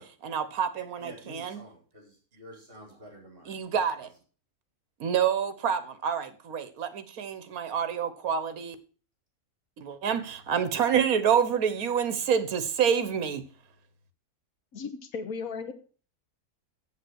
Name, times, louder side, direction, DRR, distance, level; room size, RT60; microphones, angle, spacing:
voice 1, 0.2-1.6 3.5-4.1 5.0-8.8 9.8-13.4, right 7 dB, 70° right, 1.5 m, -27 dB
voice 2, 1.0-3.6 4.0-4.1, right 1 dB, 35° right, 4.1 m, -49 dB
voice 3, 14.7-15.7, left 5 dB, 70° left, 1.6 m, -35 dB
7.5 x 7.5 x 6.2 m
omnidirectional pair, 1.6 m